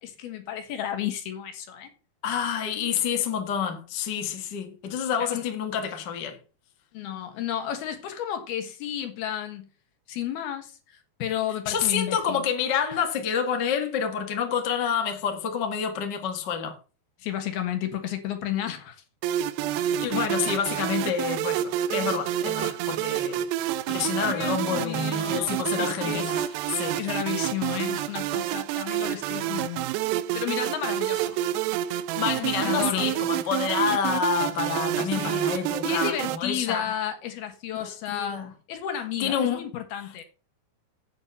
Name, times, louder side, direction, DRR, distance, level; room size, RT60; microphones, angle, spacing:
voice 1, 0.0-1.9 5.2-5.4 6.9-9.7 10.1-12.5 17.2-19.0 24.2-26.5 26.8-29.9 30.3-31.3 32.6-33.1 35.0-35.5 35.8-40.2, left 10 dB, 70° left, 3.3 m, -32 dB
voice 2, 2.2-6.4 11.7-16.7 19.7-23.4 23.9-26.4 26.7-27.0 32.1-36.9 37.7-38.5 39.2-39.6, left 7 dB, 45° left, 1.4 m, -28 dB
sound 1, 19.2-36.4, right 12 dB, 85° right, 2.8 m, -28 dB
8.7 x 8.2 x 5.5 m
omnidirectional pair, 4.8 m